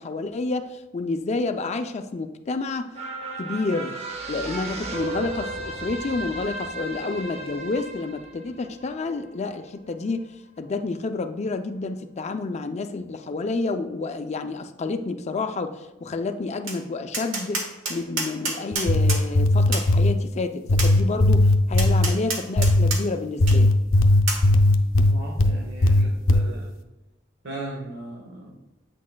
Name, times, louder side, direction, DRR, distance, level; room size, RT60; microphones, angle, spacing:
voice 1, 0.0-2.9 3.4-4.0 4.3-10.3 10.6-23.8, left 3 dB, 35° left, 8 dB, 0.4 m, -29 dB
sound 1, 2.9-9.6 10.0-10.1, right 2 dB, 30° right, 0.8 m, -35 dB
Tap, 16.7-16.8 17.1-19.2 19.7-19.9 20.8-20.9 21.8-23.0 23.5-23.6 24.3-24.4, right 3 dB, 80° right, 1.3 m, -28 dB
sound 2, 18.7-20.1 20.7-22.1 22.6-22.9 23.4-25.5 25.8-26.4, left 1 dB, 90° left, 0.6 m, -17 dB
voice 2, 25.1-26.7 27.4-28.8, right 2 dB, 65° right, -2 dB, 1.1 m, -38 dB
8.3 x 6.2 x 2.2 m, 0.98 s
head